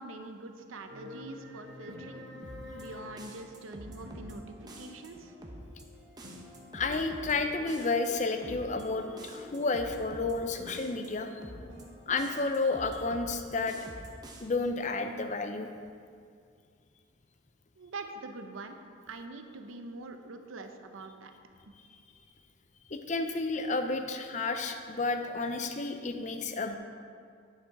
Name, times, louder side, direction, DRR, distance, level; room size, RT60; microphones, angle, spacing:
voice 1, 0.0-2.2 2.7-5.4 17.8-18.8 19.1-21.3 21.7-21.8, right 2 dB, 90° right, 6 dB, 0.7 m, -44 dB
sound 1, 0.9-12.4, left 2 dB, 65° right, 1.4 m, -49 dB
sound 2, 2.4-2.8 3.2-4.4 4.7-5.1 5.4-5.8 6.2-7.4 7.7-8.1 8.4-8.8 9.2-10.4 10.7-11.1 11.4-11.8 12.2-13.4 13.7-14.4, right 1 dB, 20° right, 0.8 m, -46 dB
voice 2, 6.7-11.3 12.1-13.8 14.4-15.7 22.9-26.8, left 3 dB, 35° left, 6 dB, 0.5 m, -31 dB
9.8 x 5.8 x 4.7 m, 2.2 s
head